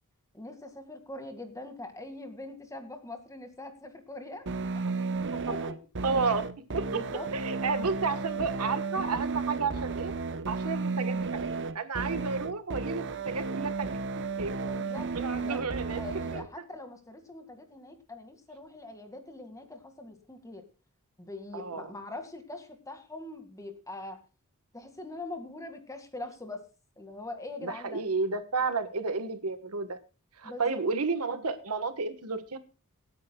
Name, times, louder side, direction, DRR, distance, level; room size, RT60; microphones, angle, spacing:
voice 1, 0.3-4.5 4.7-4.8 5.3-5.8 6.9-7.3 14.7-15.6 16.0-20.7 21.2-24.2 24.7-26.7 27.0-28.0 30.4-30.8, left 2 dB, 15° left, 6 dB, 1.9 m, -42 dB
sound 1, 4.5-16.5, right 4 dB, 55° right, 0.9 m, -33 dB
voice 2, 4.9-5.5 6.0-6.5 6.7-7.0 7.3-10.1 10.5-14.6 15.1-16.0 16.3-16.4 21.5-21.9 27.6-30.0 30.4-32.6, right 4 dB, 85° right, 10 dB, 1.4 m, -32 dB
26.0 x 9.6 x 2.3 m, 0.31 s
head